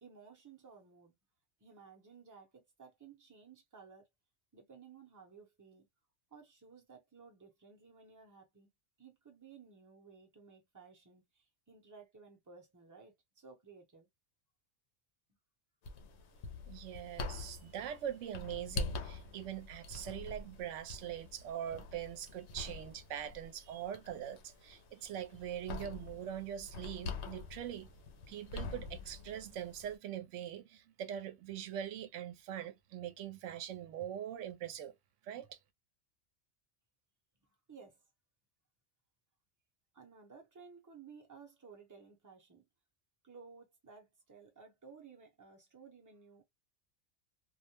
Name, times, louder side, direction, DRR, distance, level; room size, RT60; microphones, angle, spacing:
voice 1, 0.0-1.1 1.6-4.1 4.5-5.9 6.3-8.7 9.0-14.1 37.7-38.0 39.9-42.7 43.2-46.4, right 5 dB, 20° right, 0.8 m, -57 dB
sound 1, 15.8-30.0, left 3 dB, 70° left, 0.8 m, -45 dB
voice 2, 16.7-27.9 28.3-35.0 35.2-35.6, right 10 dB, 90° right, 0.9 m, -42 dB
2.4 x 2.1 x 2.9 m
omnidirectional pair, 1.2 m